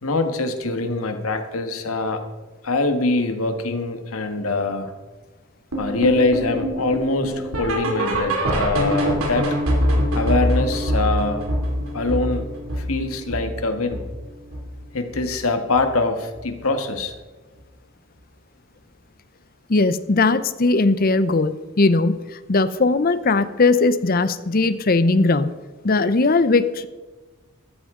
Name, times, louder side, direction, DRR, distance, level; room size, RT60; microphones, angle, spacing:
voice 1, 0.0-2.2 2.6-4.9 5.8-9.5 10.1-11.4 11.9-12.5 12.8-14.0 14.9-17.1, left 2 dB, 85° left, 6 dB, 1.5 m, -23 dB
sound 1, 5.7-14.8 15.1-15.4 15.7-15.8 16.3-16.4 17.0-17.1, equal, 90° right, 2.9 m, -24 dB
voice 2, 19.7-22.2 22.5-25.5 25.8-26.9, left 3 dB, 45° left, 14 dB, 0.6 m, -19 dB
14.5 x 13.5 x 3.8 m, 1.2 s
head